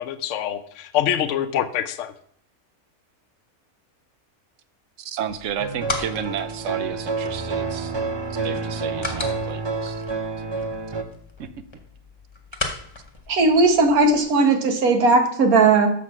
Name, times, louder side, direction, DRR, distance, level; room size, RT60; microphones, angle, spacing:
voice 1, 0.0-2.1, left 10 dB, 65° left, 9 dB, 0.9 m, -25 dB
voice 2, 5.0-8.0 8.4-10.0 10.4-10.7 11.4-11.5, right 9 dB, 65° right, 13 dB, 1.0 m, -32 dB
sound 1, 5.3-14.2, left 3 dB, 20° left, 1.0 m, -37 dB
sound 2, 5.6-11.0, right 3 dB, 35° right, 0.4 m, -28 dB
voice 3, 13.3-15.9, right 3 dB, 90° right, 5 dB, 1.7 m, -17 dB
6.8 x 6.0 x 6.0 m, 0.65 s
omnidirectional pair, 1.5 m